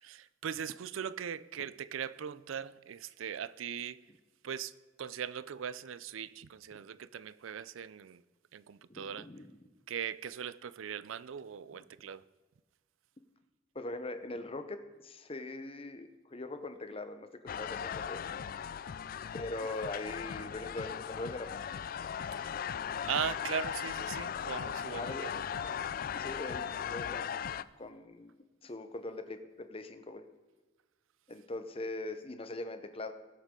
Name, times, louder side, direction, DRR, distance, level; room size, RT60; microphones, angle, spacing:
voice 1, 0.0-4.0 4.4-8.2 8.5-9.3 9.9-12.3 22.4-22.5 23.1-25.4, right 8 dB, 90° right, 0.4 m, -39 dB
voice 2, 8.9-9.5 13.7-18.2 19.3-21.6 25.0-25.3 26.2-28.3 28.6-30.2 31.3-33.1, left 2 dB, 30° left, 0.9 m, -41 dB
sound 1, 17.5-27.6, left 8 dB, 45° left, 0.3 m, -38 dB
19.5 x 8.1 x 3.8 m
head